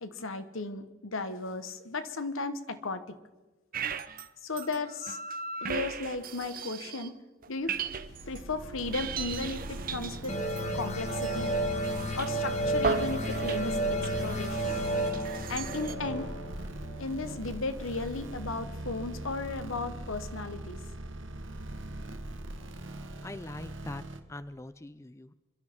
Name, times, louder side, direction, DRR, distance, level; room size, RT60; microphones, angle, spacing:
voice 1, 0.0-3.2 4.4-5.2 5.6-7.2 7.5-7.8 8.3-10.4 10.7-11.5 12.2-14.8 15.5-16.3 17.0-20.8, left 3 dB, 75° left, 10 dB, 1.2 m, -35 dB
sound 1, 3.7-4.3 4.6-7.1 7.4-8.4 8.8-15.9, right 5 dB, 45° right, 0.7 m, -37 dB
sound 2, 7.6-24.2, right 1 dB, 65° right, 1.3 m, -41 dB
sound 3, 10.3-17.6, right 1 dB, 35° left, 1.4 m, -32 dB
voice 2, 23.2-25.3, left 2 dB, 15° left, 13 dB, 0.4 m, -43 dB
28.0 x 12.0 x 3.6 m, 1.2 s
head